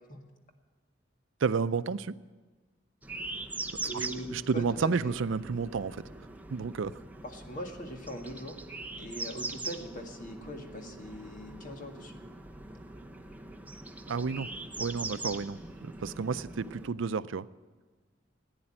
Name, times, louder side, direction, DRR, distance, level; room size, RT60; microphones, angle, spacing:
voice 1, 1.4-2.1 3.7-6.0 6.5-6.9 14.1-14.5 14.8-17.5, right 5 dB, 85° right, 15 dB, 0.5 m, -31 dB
sound 1, 3.0-16.9, right 2 dB, 10° right, 0.8 m, -42 dB
voice 2, 3.8-5.2 7.2-8.6 9.0-12.2, right 1 dB, 45° left, 3 dB, 1.9 m, -41 dB
15.0 x 9.8 x 8.8 m, 1.3 s
head